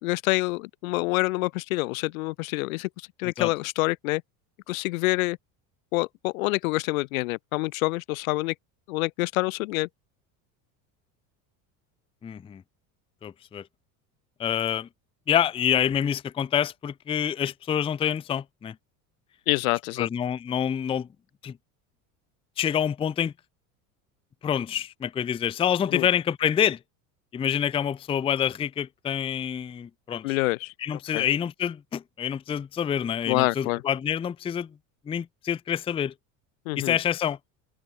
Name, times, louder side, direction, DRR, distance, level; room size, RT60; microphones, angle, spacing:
voice 1, 0.0-2.9 3.2-4.2 4.7-5.4 5.9-8.5 8.9-9.9 19.5-20.1 25.9-26.1 30.2-30.7 31.1-31.2 33.3-33.8 36.7-37.0, left 22 dB, 85° left, 1.1 m, -26 dB
voice 2, 12.2-12.6 13.2-13.6 14.4-14.9 15.3-18.8 20.0-21.1 21.4-21.6 22.6-23.3 24.4-26.8 27.3-30.4 30.8-34.7 35.1-36.1 36.8-37.4, left 9 dB, 15° left, 0.4 m, -27 dB
supercardioid pair, 100°, 40 cm